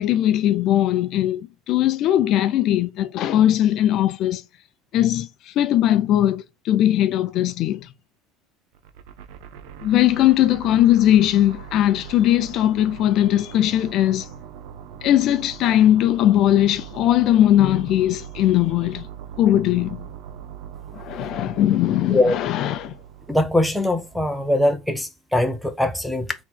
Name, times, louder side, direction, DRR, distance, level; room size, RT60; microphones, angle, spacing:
voice 1, 0.0-4.4 4.9-7.9 9.8-14.3 15.0-19.1 19.4-20.0 20.9-22.9, left 12 dB, 45° left, 0.4 m, -19 dB
sound 1, 8.7-24.9, right 9 dB, 75° right, 0.7 m, -41 dB
voice 2, 23.3-26.3, left 1 dB, ahead, 0.6 m, -21 dB
3.9 x 3.0 x 4.3 m
cardioid pair, 150°, 0 cm